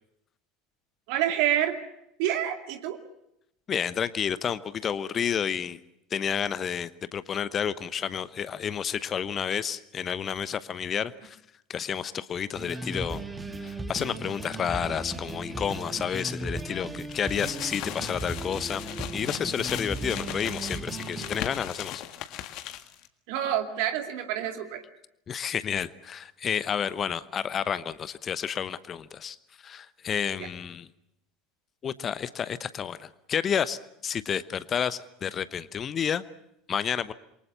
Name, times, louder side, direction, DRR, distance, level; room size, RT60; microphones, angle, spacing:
voice 1, 1.1-1.8 2.2-3.0 23.3-24.8 30.4-30.5, right 11 dB, 55° right, 6 dB, 2.4 m, -27 dB
voice 2, 3.7-5.8 6.1-11.4 11.7-13.2 13.6-18.8 19.1-22.0 22.3-22.5 25.3-29.4 29.6-30.9 31.8-36.2 36.7-37.1, left 8 dB, 30° left, 16 dB, 1.0 m, -30 dB
sound 1, 12.5-21.5, right 2 dB, 10° right, 2.8 m, -37 dB
sound 2, 17.1-23.1, left 13 dB, 50° left, 1.8 m, -38 dB
27.5 x 23.5 x 7.0 m, 0.80 s
figure-of-eight pair, 70°, 0 cm